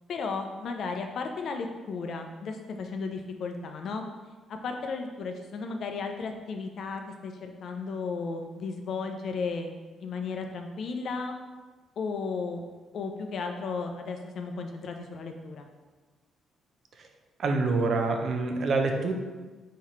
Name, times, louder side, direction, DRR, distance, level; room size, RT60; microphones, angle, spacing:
voice 1, 0.1-4.0 4.5-9.7 10.0-11.4 12.0-12.6 12.9-15.7, left 4 dB, 65° left, 5 dB, 0.5 m, -34 dB
voice 2, 17.4-19.1, right 3 dB, 55° right, 3 dB, 0.6 m, -26 dB
4.2 x 4.0 x 3.1 m, 1.3 s
cardioid pair, 90°, 0 cm